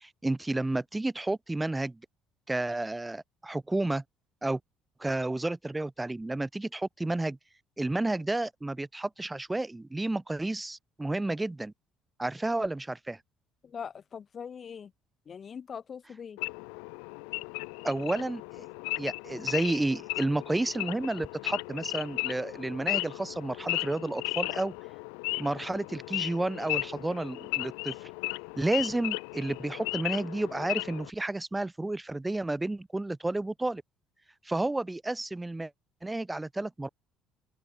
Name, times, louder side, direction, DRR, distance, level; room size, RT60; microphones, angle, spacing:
voice 1, 0.0-2.0 2.5-4.0 4.4-4.6 5.0-7.4 7.8-11.7 12.2-13.2 17.8-18.7 19.0-24.7 25.4-28.1 28.6-33.8 34.4-35.7 36.0-36.9, right 2 dB, 10° right, 0.7 m, -31 dB
voice 2, 13.6-14.9 15.3-16.4, left 7 dB, 35° left, 1.4 m, -41 dB
Wild animals / Idling, 16.4-31.1, left 40 dB or more, 65° left, 0.7 m, -35 dB
figure-of-eight pair, 55°, 0 cm